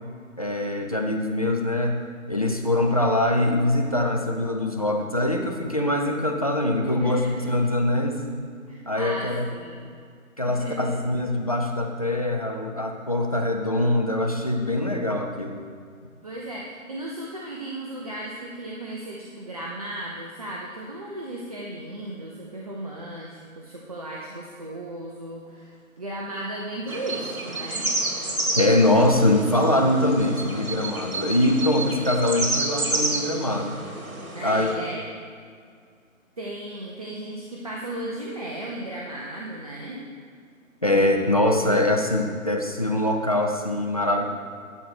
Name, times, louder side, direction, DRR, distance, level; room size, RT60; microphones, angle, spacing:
voice 1, 0.4-2.0 2.3-8.2 8.9-9.5 10.4-15.6 28.6-33.8 34.4-34.7 40.8-44.2, left 1 dB, 30° left, 2 dB, 0.5 m, -23 dB
voice 2, 6.8-7.5 8.7-9.9 10.5-10.9 16.2-27.9 34.3-35.0 36.4-40.0, right 1 dB, 25° right, -3 dB, 0.6 m, -35 dB
sound 1, 26.9-34.7, right 2 dB, 85° right, 1.7 m, -30 dB
11.5 x 4.1 x 6.4 m, 2.1 s
figure-of-eight pair, 150°, 41 cm